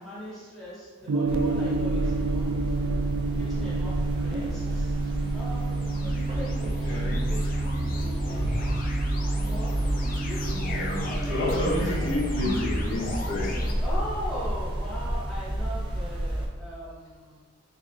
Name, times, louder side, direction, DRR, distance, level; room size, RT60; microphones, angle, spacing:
voice 1, 0.0-2.6 3.3-5.0 5.3-8.7 9.4-10.5 13.8-17.4, equal, ahead, -9 dB, 1.0 m, -40 dB
Gong, 1.1-15.2, right 4 dB, 85° right, 0.3 m, -31 dB
sound 1, 1.3-16.5, right 1 dB, 25° right, 0.5 m, -30 dB
sound 2, 4.7-13.7, left 2 dB, 40° left, 0.4 m, -38 dB
voice 2, 6.6-7.2 8.3-8.6 10.5-13.6, left 1 dB, 75° left, -7 dB, 1.4 m, -30 dB
3.6 x 3.4 x 2.5 m, 1.4 s
head